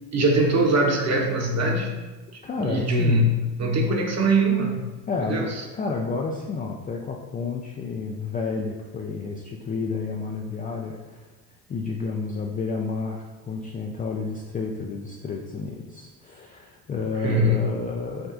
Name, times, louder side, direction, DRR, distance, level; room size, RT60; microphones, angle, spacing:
voice 1, 0.1-2.0 2.3-4.9 5.2-5.5 17.2-17.6, right 1 dB, 35° right, 1 dB, 1.1 m, -22 dB
voice 2, 2.4-3.3 5.1-5.5 5.7-11.3 11.7-18.3, left 4 dB, 20° left, -1 dB, 0.4 m, -30 dB
6.1 x 2.3 x 3.8 m, 1.2 s
hypercardioid pair, 65°, 48 cm